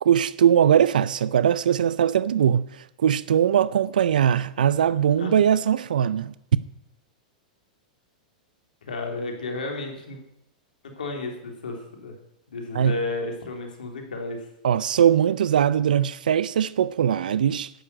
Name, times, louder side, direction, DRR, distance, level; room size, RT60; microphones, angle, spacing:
voice 1, 0.0-2.7 3.0-6.3 12.7-13.0 14.6-17.7, right 9 dB, 80° right, 0.4 m, -20 dB
voice 2, 8.8-10.2 10.8-12.2 12.5-14.4, left 2 dB, 85° left, 3.1 m, -32 dB
11.5 x 6.6 x 8.8 m
hypercardioid pair, 115°, 5 cm